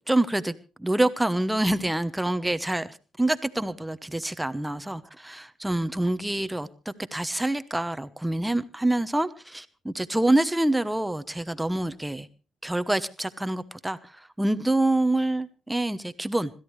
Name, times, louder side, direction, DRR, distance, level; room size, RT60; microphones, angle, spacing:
voice 1, 0.0-12.3 12.6-16.5, right 1 dB, 5° right, 1.0 m, -26 dB
26.0 x 13.5 x 3.2 m
cardioid pair, 90°, 0 cm